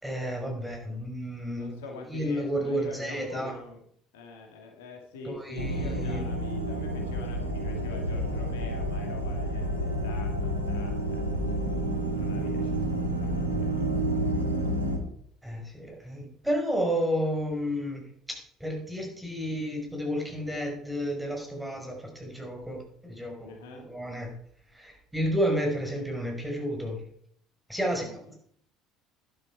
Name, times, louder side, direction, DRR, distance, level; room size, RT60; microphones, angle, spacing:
voice 1, 0.0-1.7 2.1-3.6 5.2-6.2 15.4-24.3 24.7-27.0 27.7-28.4, equal, 5° right, 1 dB, 5.7 m, -31 dB
voice 2, 1.5-3.8 4.1-11.6 12.0-13.9 14.2-14.7 23.4-23.9 28.0-28.1, left 3 dB, 70° left, 2 dB, 2.3 m, -45 dB
sound 1, 5.6-15.0, right 1 dB, 90° left, 2.0 m, -29 dB
11.5 x 11.5 x 4.8 m, 0.64 s
figure-of-eight pair, 60°, 0 cm